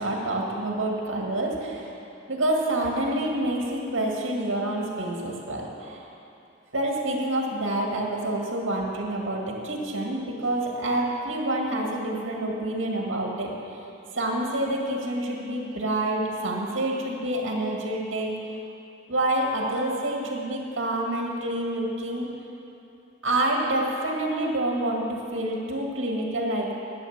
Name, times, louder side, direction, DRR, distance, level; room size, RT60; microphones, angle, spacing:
voice 1, 0.0-1.9 2.3-6.1 6.7-13.5 14.1-18.4 19.1-22.3 23.2-26.7, right 1 dB, 90° right, -1 dB, 1.9 m, -27 dB
11.5 x 9.3 x 7.3 m, 2.8 s
head